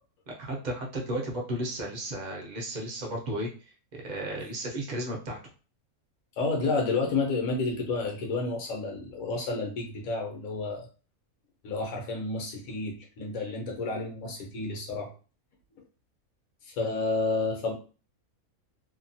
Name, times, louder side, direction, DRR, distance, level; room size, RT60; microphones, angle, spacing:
voice 1, 0.3-3.5 3.9-5.4 13.4-13.6, right 1 dB, 45° right, 0 dB, 0.6 m, -34 dB
voice 2, 6.4-10.9 11.6-15.1 15.7-15.8 16.6-17.7, left 3 dB, 70° left, 1 dB, 1.2 m, -30 dB
2.8 x 2.3 x 2.6 m, 0.36 s
omnidirectional pair, 1.6 m